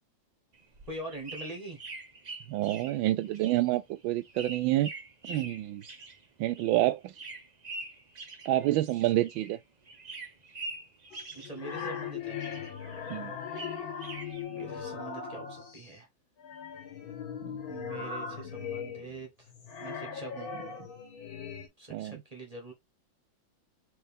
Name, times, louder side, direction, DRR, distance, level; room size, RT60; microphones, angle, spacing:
sound 1, 0.5-9.6 9.8-12.1 12.4-14.4, right 3 dB, 50° right, 0.5 m, -45 dB
voice 1, 0.9-1.8 11.3-12.4 14.5-16.1 17.7-19.5 19.8-20.5 21.8-22.7, right 2 dB, 25° right, 1.0 m, -43 dB
voice 2, 2.5-4.9 5.3-5.8 6.4-7.1 8.5-9.6 13.1-13.3 17.4-17.6 21.9-22.2, right 15 dB, 80° right, 1.4 m, -28 dB
sound 2, 11.1-15.9 16.4-21.7, left 7 dB, 90° left, 2.3 m, -39 dB
4.5 x 3.3 x 3.6 m
omnidirectional pair, 2.1 m